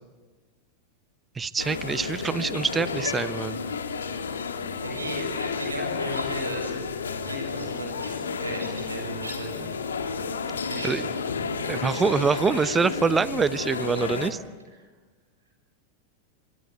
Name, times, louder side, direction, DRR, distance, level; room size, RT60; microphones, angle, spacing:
voice 1, 1.4-3.6 10.8-11.0 11.7-14.4, right 5 dB, 15° right, 17 dB, 0.8 m, -25 dB
sound 1, 1.6-14.3, left 5 dB, 70° left, 2.0 m, -31 dB
voice 2, 4.8-6.7 7.2-9.7 10.7-11.1, right 1 dB, 80° right, 4 dB, 7.1 m, -36 dB
25.5 x 22.5 x 8.5 m, 1.3 s
figure-of-eight pair, 90°, 0 cm